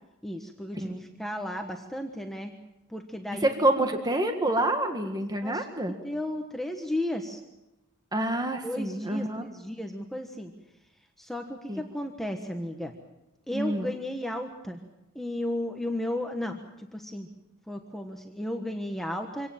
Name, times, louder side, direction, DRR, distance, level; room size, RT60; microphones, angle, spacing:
voice 1, 0.2-2.5 2.9-3.5 5.4-7.4 8.6-10.5 11.2-12.9 13.5-14.8 15.1-17.3 17.7-19.5, left 1 dB, ahead, 3 dB, 1.4 m, -34 dB
voice 2, 3.4-6.0 8.1-9.5 11.7-11.8 13.5-13.9, right 1 dB, 20° right, 5 dB, 1.7 m, -27 dB
26.0 x 18.0 x 7.4 m, 0.95 s
head